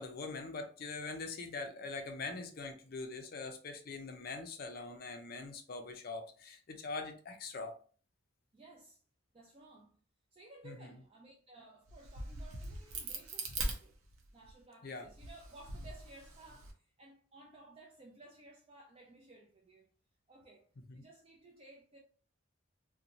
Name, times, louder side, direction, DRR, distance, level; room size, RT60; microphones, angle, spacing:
voice 1, 0.0-7.7 10.6-10.9 14.8-15.1 20.9-21.0, left 3 dB, 45° left, 0.5 m, -43 dB
voice 2, 8.5-9.0 9.3-10.0 10.3-14.0 14.3-19.9 20.3-22.0, right 2 dB, 30° right, 0.3 m, -57 dB
Crack, 11.9-14.5 15.1-16.7, right 2 dB, 90° right, 0.6 m, -41 dB
2.6 x 2.1 x 2.8 m
head